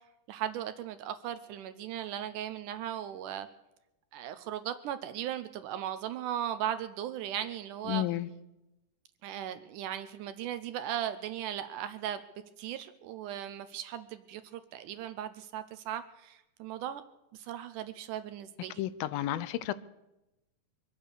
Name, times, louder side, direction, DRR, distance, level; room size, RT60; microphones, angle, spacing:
voice 1, 0.3-3.5 4.1-8.0 9.2-12.2 12.6-17.0 17.3-18.8, right 11 dB, 75° right, 11 dB, 2.0 m, -37 dB
voice 2, 7.9-8.3 18.8-19.7, left 13 dB, 90° left, 16 dB, 2.5 m, -32 dB
23.5 x 8.9 x 6.8 m, 0.95 s
omnidirectional pair, 4.1 m